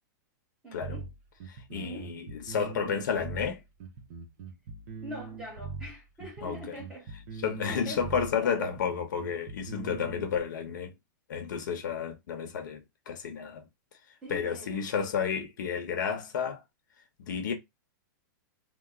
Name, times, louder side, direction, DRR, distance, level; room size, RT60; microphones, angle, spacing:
voice 1, 0.6-1.1 1.7-2.1 5.0-7.1 7.6-8.0 8.4-8.7 14.2-15.0, right 1 dB, 10° right, 0.9 m, -43 dB
sound 1, 0.8-10.4, right 5 dB, 40° right, 0.7 m, -42 dB
voice 2, 1.5-3.6 6.4-6.8 7.4-10.9 11.3-13.7 14.3-16.6 17.2-17.5, left 7 dB, 65° left, 0.9 m, -31 dB
2.9 x 2.0 x 3.5 m
supercardioid pair, 165°, 11 cm